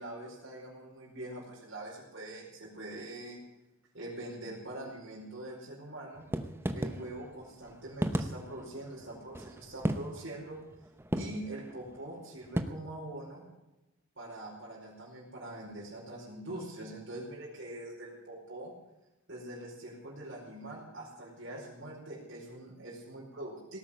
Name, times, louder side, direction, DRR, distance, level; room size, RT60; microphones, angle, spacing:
voice 1, 0.0-3.4 3.9-6.3 6.7-10.6 11.2-13.5 14.2-18.7 19.3-23.8, right 1 dB, 60° right, -6 dB, 5.2 m, -43 dB
sound 1, 6.2-12.6, right 1 dB, 10° right, 0.8 m, -35 dB
18.0 x 9.0 x 8.7 m, 0.94 s
head